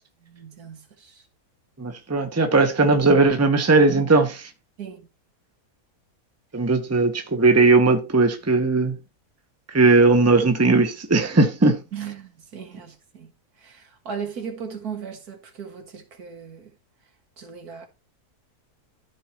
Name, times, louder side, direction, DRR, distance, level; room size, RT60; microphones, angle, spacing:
voice 1, 0.2-1.2 4.8-5.0 11.9-13.3 13.6-16.7 17.4-17.9, right 7 dB, 75° right, 2.1 m, -37 dB
voice 2, 1.8-4.5 6.5-9.0 9.7-11.8, right 3 dB, 10° right, 1.0 m, -18 dB
13.5 x 4.7 x 3.1 m
omnidirectional pair, 1.6 m